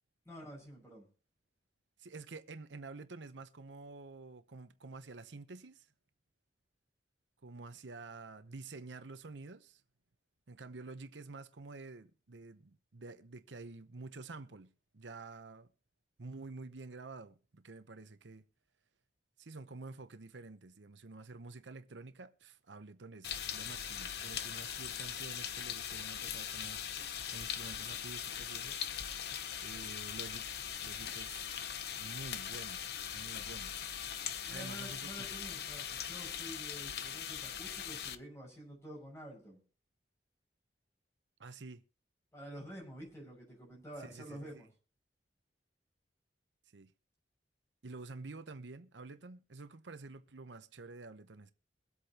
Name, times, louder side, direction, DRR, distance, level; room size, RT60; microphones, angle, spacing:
voice 1, 0.2-1.1 34.4-39.6 42.3-44.7, equal, 15° left, 6.3 m, -49 dB
voice 2, 2.0-5.9 7.4-9.8 10.5-15.7 16.2-18.4 19.4-29.2 29.6-31.4 32.0-32.8 33.1-33.7 34.5-35.1 41.4-41.8 44.0-44.5 46.7-46.9 47.8-51.5, right 3 dB, 85° right, 0.9 m, -49 dB
sound 1, 23.2-38.1, left 9 dB, 60° left, 0.8 m, -40 dB
23.0 x 8.3 x 2.9 m
head